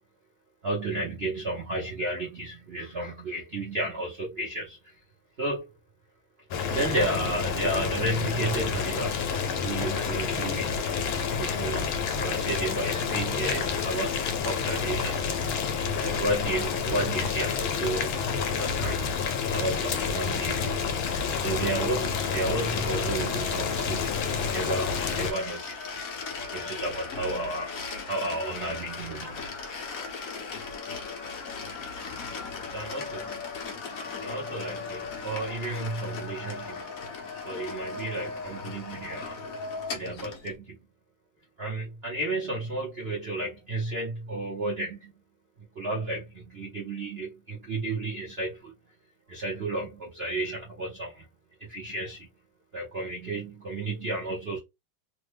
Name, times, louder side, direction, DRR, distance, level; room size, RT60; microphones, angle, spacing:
voice 1, 0.6-4.9 5.4-5.6 6.7-9.3 9.6-10.7 11.4-15.2 16.0-19.2 19.5-20.9 21.4-25.9 26.5-29.5 30.0-30.2 32.7-33.3 34.2-36.8 37.4-39.4 39.9-40.8 41.6-45.1 45.8-48.7 49.3-51.3 51.6-52.3 52.7-54.6, right 2 dB, 75° right, 0.5 m, -32 dB
Boiling, 6.5-25.3, left 6 dB, 75° left, 1.4 m, -29 dB
sound 1, 21.1-40.5, left 4 dB, 60° left, 0.9 m, -38 dB
3.4 x 2.0 x 3.2 m
omnidirectional pair, 2.3 m